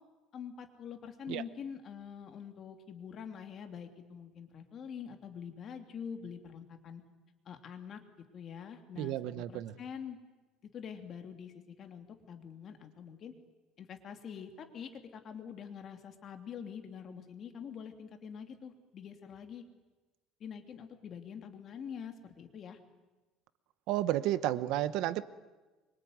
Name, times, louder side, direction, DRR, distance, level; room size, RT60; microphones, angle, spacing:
voice 1, 0.3-7.0 7.4-8.0 8.3-10.2 10.6-13.3 13.8-19.6 20.4-22.8, left 7 dB, 40° left, 5 dB, 3.0 m, -45 dB
voice 2, 9.0-9.7 23.9-25.2, right 14 dB, 65° right, 15 dB, 1.1 m, -32 dB
25.5 x 24.0 x 9.6 m, 1.2 s
cardioid pair, 150°, 0 cm